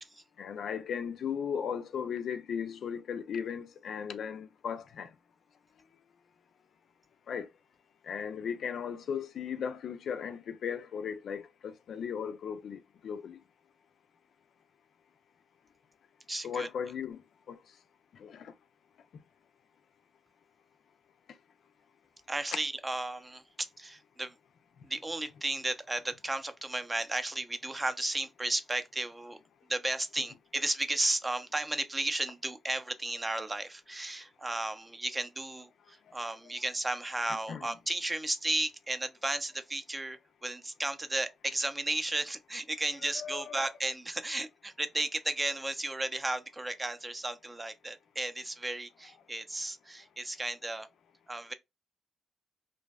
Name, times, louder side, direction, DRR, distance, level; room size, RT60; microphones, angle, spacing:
voice 1, 0.4-5.1 7.3-7.5 8.0-13.4 16.4-17.2 17.5-17.6 18.2-18.5 37.5-37.7 43.2-43.6, left 7 dB, 70° left, 0.3 m, -36 dB
voice 2, 16.3-16.7 22.3-24.3 24.8-29.4 29.7-50.9 51.3-51.5, right 2 dB, 20° right, 0.5 m, -34 dB
2.6 x 2.1 x 2.2 m
cardioid pair, 65°, 0 cm